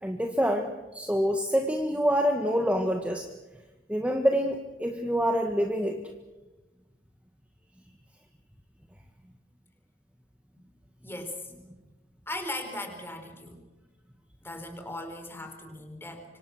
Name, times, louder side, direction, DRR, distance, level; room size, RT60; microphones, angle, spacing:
voice 1, 0.0-3.3 3.9-6.0, equal, 10° right, 4 dB, 1.5 m, -26 dB
voice 2, 11.0-11.5 12.3-13.6 14.4-16.2, left 1 dB, 15° left, 5 dB, 4.4 m, -38 dB
26.0 x 25.5 x 6.3 m, 1.1 s
head